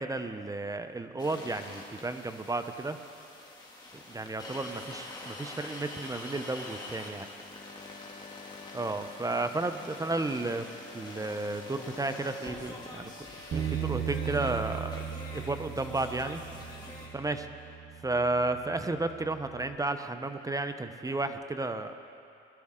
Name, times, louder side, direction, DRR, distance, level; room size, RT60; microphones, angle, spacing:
voice 1, 0.0-3.0 3.9-7.3 8.7-10.7 10.9-13.3 13.5-15.0 15.3-16.4 17.1-17.5 18.0-21.9, right 2 dB, 15° right, 8 dB, 0.7 m, -33 dB
sound 1, 1.2-17.1, left 2 dB, 20° left, 2.5 m, -45 dB
sound 2, 7.5-18.6, left 5 dB, 75° left, 3.3 m, -54 dB
Bass guitar, 13.5-19.8, right 9 dB, 60° right, 0.9 m, -38 dB
21.5 x 12.0 x 3.7 m, 2.6 s
cardioid pair, 90°, 20 cm